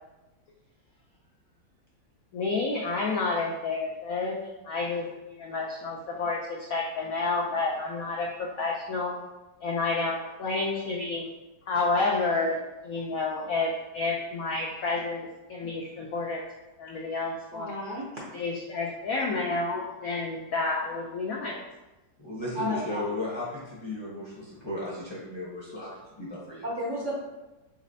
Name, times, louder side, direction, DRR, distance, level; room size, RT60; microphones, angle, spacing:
voice 1, 2.3-4.4 4.6-9.1 9.6-11.3 11.7-12.6 12.8-16.4 16.8-17.8 18.3-21.6, left 3 dB, 90° left, -2 dB, 0.7 m, -30 dB
voice 2, 17.5-18.1 22.5-23.0 26.6-27.1, equal, 60° right, -5 dB, 0.8 m, -33 dB
voice 3, 22.2-26.7, left 2 dB, 25° left, -7 dB, 0.6 m, -35 dB
4.1 x 4.0 x 2.6 m, 1.1 s
omnidirectional pair, 2.1 m